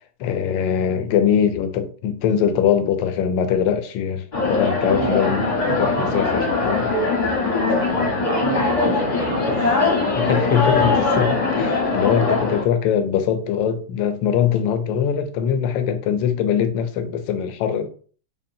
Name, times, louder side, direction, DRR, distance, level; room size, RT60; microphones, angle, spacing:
voice 1, 0.2-6.9 10.1-17.9, left 8 dB, 75° left, 1.2 m, -22 dB
sound 1, 4.3-12.6, left 3 dB, 35° left, 0.7 m, -21 dB
voice 2, 4.9-5.8 7.6-10.2, right 6 dB, 85° right, 1.7 m, -31 dB
5.1 x 2.4 x 2.6 m
omnidirectional pair, 2.3 m